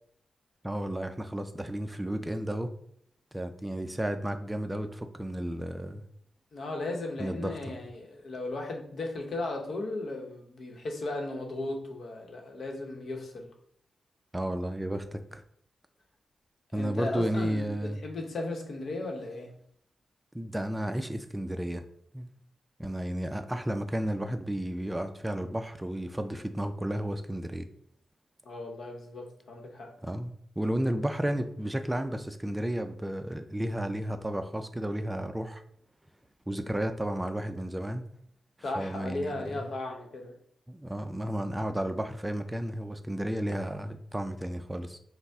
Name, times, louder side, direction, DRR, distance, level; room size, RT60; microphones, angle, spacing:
voice 1, 0.6-2.7 3.3-6.0 7.2-7.6 14.3-15.4 16.7-18.0 20.3-21.8 22.1-22.3 22.8-27.7 30.0-35.6 36.5-38.1 38.8-39.7 40.7-45.0, right 1 dB, 10° right, 8 dB, 0.3 m, -32 dB
voice 2, 6.5-13.5 16.7-19.5 28.4-29.9 38.6-40.4, left 2 dB, 70° left, 1 dB, 0.8 m, -36 dB
5.4 x 2.0 x 3.5 m, 0.65 s
cardioid pair, 75°, 0 cm